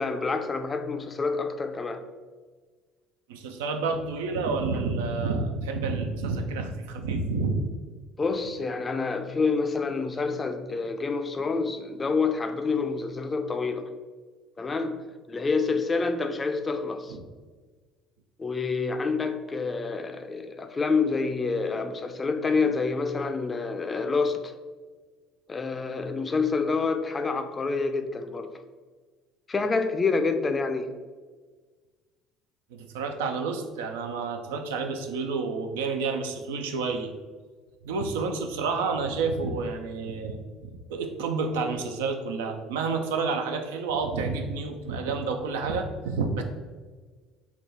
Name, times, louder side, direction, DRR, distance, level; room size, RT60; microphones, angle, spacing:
voice 1, 0.0-2.0 8.2-13.9 14.6-17.2 18.4-24.5 25.5-28.5 29.5-30.9, left 4 dB, 30° left, 8 dB, 0.4 m, -27 dB
voice 2, 3.3-7.7 17.1-17.2 32.7-37.1 37.8-46.4, right 4 dB, 80° right, 6 dB, 0.4 m, -29 dB
3.6 x 2.3 x 3.9 m, 1.4 s
hypercardioid pair, 65°, 0 cm